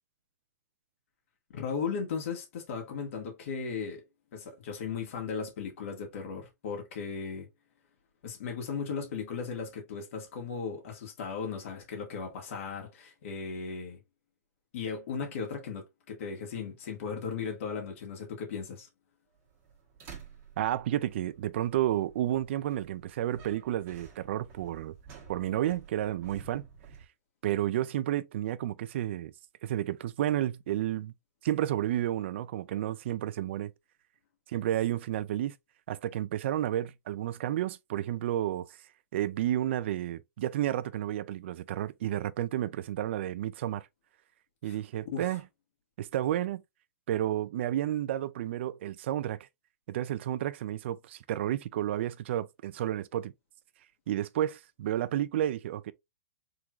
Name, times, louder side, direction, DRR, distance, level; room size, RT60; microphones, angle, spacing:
voice 1, 1.5-4.0 4.3-7.5 8.2-14.0 14.7-18.9 44.6-44.8 45.1-45.3, left 5 dB, 50° left, 1.7 m, -36 dB
sound 1, 19.3-27.1, right 6 dB, 25° right, 1.2 m, -52 dB
voice 2, 20.6-25.0 25.3-26.7 27.4-29.3 29.6-31.1 31.4-33.7 34.5-35.6 35.9-38.7 39.1-43.9 44.6-45.4 46.0-46.6 47.1-49.5 49.9-53.3 54.1-55.9, right 12 dB, 45° right, 0.4 m, -31 dB
4.6 x 3.7 x 2.4 m
hypercardioid pair, 170°, 9 cm